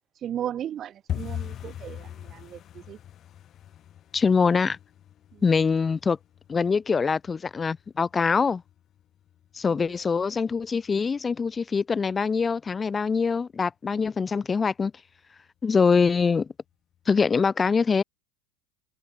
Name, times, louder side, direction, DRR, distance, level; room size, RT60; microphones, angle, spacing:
voice 1, 0.2-3.0 5.3-5.4 9.8-9.9, right 10 dB, 35° right, 0.5 m, -36 dB
sound 1, 1.1-11.8 12.1-12.8 13.0-13.3 13.6-14.0 14.3-14.4 14.9-15.4 15.7-15.8 16.3-16.4, left 11 dB, 40° left, 2.1 m, -41 dB
voice 2, 4.1-4.8 5.4-6.2 6.5-8.6 9.5-14.9 15.6-16.5 17.1-18.0, left 5 dB, 20° left, 0.5 m, -23 dB
supercardioid pair, 110°, 0 cm